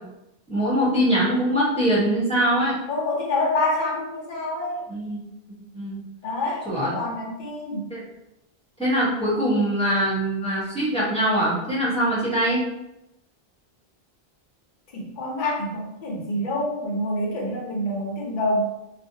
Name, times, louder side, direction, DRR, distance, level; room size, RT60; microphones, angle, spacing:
voice 1, 0.5-2.8 4.9-5.2 5.7-6.0 6.6-7.0 7.9-8.0 8.8-12.7, right 1 dB, 5° left, -9 dB, 0.9 m, -23 dB
voice 2, 2.9-5.2 6.2-7.9 14.9-18.6, left 1 dB, 55° left, -3 dB, 0.7 m, -27 dB
2.5 x 2.2 x 2.6 m, 0.90 s
omnidirectional pair, 1.0 m